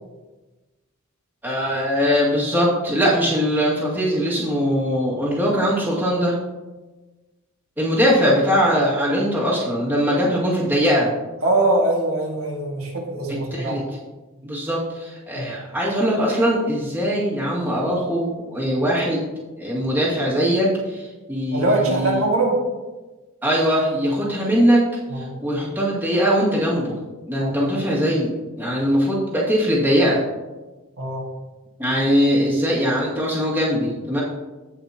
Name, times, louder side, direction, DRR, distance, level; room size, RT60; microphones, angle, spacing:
voice 1, 1.4-6.4 7.8-11.1 13.5-13.8 14.4-19.2 19.6-22.2 23.4-24.8 25.2-27.0 27.3-28.3 28.6-30.2 31.8-34.2, equal, 10° right, -6 dB, 2.1 m, -21 dB
voice 2, 11.4-13.7 15.4-15.5 21.5-22.6 25.1-25.3 27.4-27.5 31.0-31.3, right 2 dB, 80° right, -2 dB, 1.9 m, -22 dB
16.0 x 5.4 x 2.9 m, 1.2 s
head